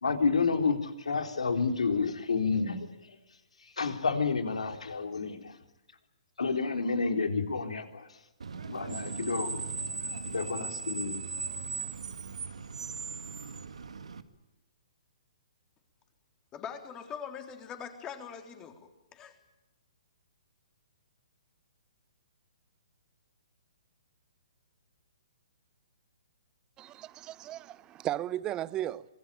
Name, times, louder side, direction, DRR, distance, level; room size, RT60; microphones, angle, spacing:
voice 1, 0.0-2.9 3.6-5.6 6.4-8.1 8.6-9.6 10.3-11.2, left 4 dB, 85° left, 3.8 m, -30 dB
Screech, 8.4-14.2, right 4 dB, 80° right, 2.0 m, -38 dB
voice 2, 16.5-19.4, left 7 dB, 20° left, 3.7 m, -42 dB
voice 3, 26.8-29.1, right 13 dB, 20° right, 0.9 m, -35 dB
26.0 x 21.0 x 8.8 m
hypercardioid pair, 140°, 3 cm